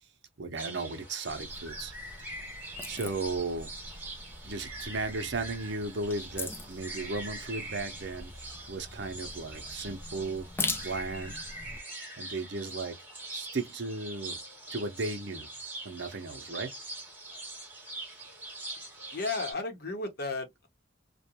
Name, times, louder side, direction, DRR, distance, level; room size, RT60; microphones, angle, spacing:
voice 1, 0.4-1.9 2.9-3.7 4.4-8.3 8.7-10.5 10.8-11.3 12.2-13.0 13.3-14.4 14.7-15.5 15.8-16.7, right 3 dB, 65° right, 0.7 m, -35 dB
sound 1, 0.6-19.5, right 2 dB, 10° right, 1.0 m, -43 dB
sound 2, 1.3-11.8, left 3 dB, 10° left, 0.4 m, -42 dB
voice 2, 19.1-20.7, left 3 dB, 55° left, 0.9 m, -34 dB
2.5 x 2.2 x 2.8 m
head